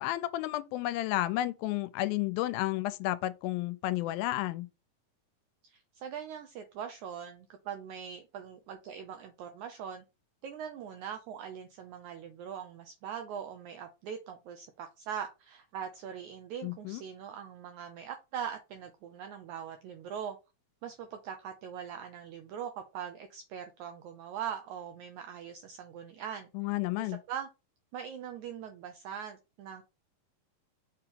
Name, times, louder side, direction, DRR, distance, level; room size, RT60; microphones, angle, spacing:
voice 1, 0.0-4.7 16.6-17.0 26.5-27.2, left 16 dB, 90° left, 2.4 m, -32 dB
voice 2, 5.7-10.0 10.4-20.4 20.8-26.5 27.0-27.5 27.9-29.8, right 8 dB, 80° right, 1.7 m, -41 dB
6.4 x 2.9 x 5.2 m
omnidirectional pair, 4.1 m